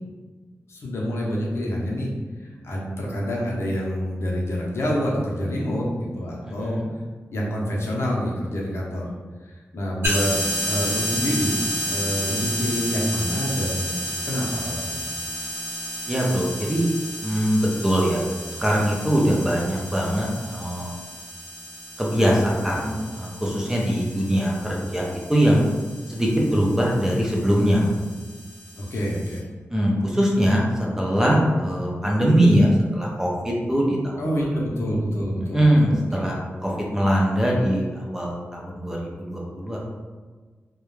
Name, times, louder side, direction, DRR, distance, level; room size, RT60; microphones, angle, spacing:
voice 1, 0.7-2.1 2.6-6.8 7.3-9.1 9.4-10.3 10.7-11.6 11.9-14.0 14.2-15.0 26.7-26.8 28.8-29.4 34.2-36.3, equal, 65° left, -4 dB, 0.6 m, -27 dB
voice 2, 6.4-6.9 16.1-16.9 17.2-18.2 18.6-20.9 22.0-25.0 25.3-25.6 26.1-27.9 29.7-30.7 31.0-34.2 35.5-39.9, equal, 10° right, -3 dB, 0.4 m, -22 dB
sound 1, 10.0-29.4, equal, 55° right, 0.8 m, -32 dB
2.3 x 2.1 x 3.0 m, 1.4 s
wide cardioid pair, 160°, 5 cm